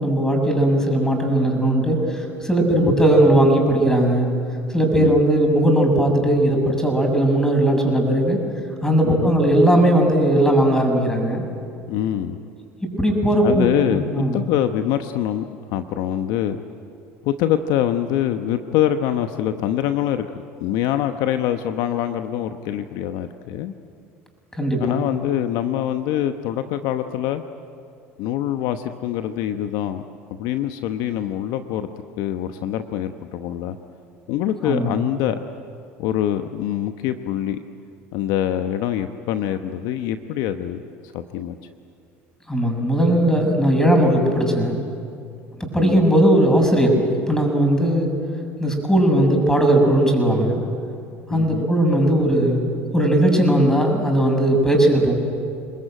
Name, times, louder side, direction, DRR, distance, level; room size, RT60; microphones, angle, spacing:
voice 1, 0.0-4.3 4.7-8.4 8.8-11.4 13.0-14.4 24.6-25.0 34.6-34.9 42.5-44.8 45.6-48.1 48.6-50.6 51.3-52.7 52.9-55.2, right 1 dB, 10° left, 3 dB, 6.9 m, -18 dB
voice 2, 11.9-12.4 13.4-16.6 17.2-20.3 20.6-23.7 24.8-27.4 28.2-30.0 30.3-31.9 32.2-33.8 34.3-35.4 36.0-37.6 38.1-40.8 41.1-41.6 45.8-46.1 51.3-51.7, left 11 dB, 65° left, 8 dB, 1.0 m, -24 dB
27.0 x 20.5 x 9.0 m, 2.4 s
hypercardioid pair, 75°, 7 cm